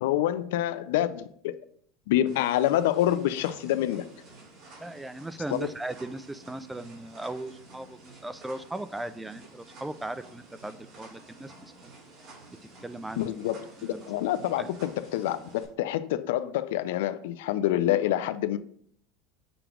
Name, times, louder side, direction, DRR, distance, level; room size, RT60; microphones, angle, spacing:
voice 1, 0.0-1.6 2.1-4.0 5.5-5.7 13.2-18.6, left 13 dB, 80° left, 0.4 m, -27 dB
sound 1, 2.3-15.6, right 2 dB, 40° right, 2.5 m, -51 dB
voice 2, 4.8-11.9 12.8-13.3 13.8-14.0 14.6-14.7, right 1 dB, 5° right, 0.3 m, -38 dB
6.9 x 3.0 x 4.9 m
supercardioid pair, 140°, 0 cm